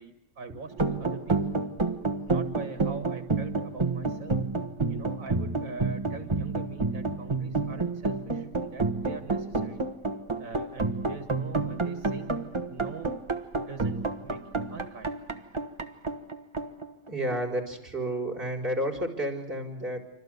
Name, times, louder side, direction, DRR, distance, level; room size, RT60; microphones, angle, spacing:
voice 1, 0.0-1.4 2.3-4.4 4.9-9.8 10.4-12.3 12.7-13.2 13.5-15.1, right 4 dB, 80° right, 8 dB, 2.1 m, -43 dB
sound 1, 0.7-17.6, right 3 dB, 20° right, 1.4 m, -30 dB
voice 2, 17.1-20.0, right 1 dB, 40° right, 2 dB, 5.8 m, -31 dB
28.0 x 25.5 x 8.2 m, 0.74 s
omnidirectional pair, 1.4 m